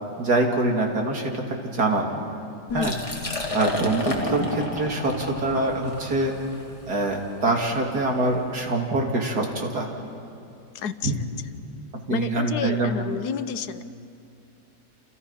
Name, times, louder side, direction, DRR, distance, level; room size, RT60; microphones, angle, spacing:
voice 1, 0.2-2.2 2.7-2.9 3.5-6.4 6.9-9.9 11.0-11.2 12.1-13.0, right 2 dB, 75° right, 1 dB, 3.2 m, -24 dB
voice 2, 2.7-3.0 10.7-11.3 12.1-13.9, left 7 dB, 85° left, 12 dB, 1.4 m, -30 dB
Liquid, 2.7-8.4, left 2 dB, 20° left, 2.2 m, -31 dB
29.0 x 28.5 x 5.7 m, 2.6 s
omnidirectional pair, 1.7 m